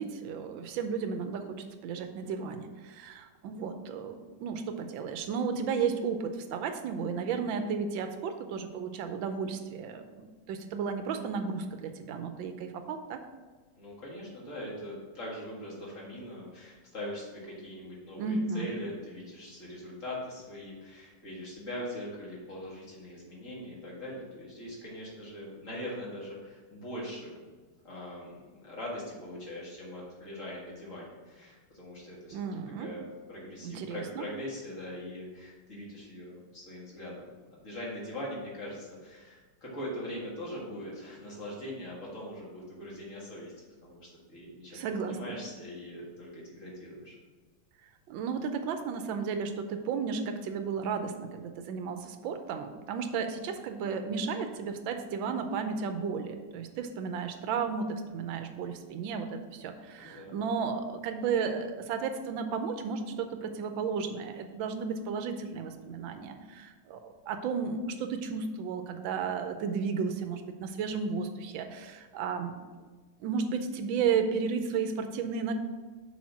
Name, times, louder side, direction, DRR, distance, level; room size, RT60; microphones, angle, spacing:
voice 1, 0.0-13.2 18.2-18.7 32.3-32.9 33.6-34.2 44.7-45.4 48.1-72.6 73.2-75.5, right 5 dB, 90° right, 7 dB, 1.4 m, -33 dB
voice 2, 13.8-27.4 27.8-32.4 32.8-37.4 37.6-43.5 43.8-47.2 60.0-60.3, left 1 dB, 45° left, -5 dB, 2.1 m, -41 dB
6.3 x 4.0 x 6.0 m, 1.4 s
omnidirectional pair, 2.0 m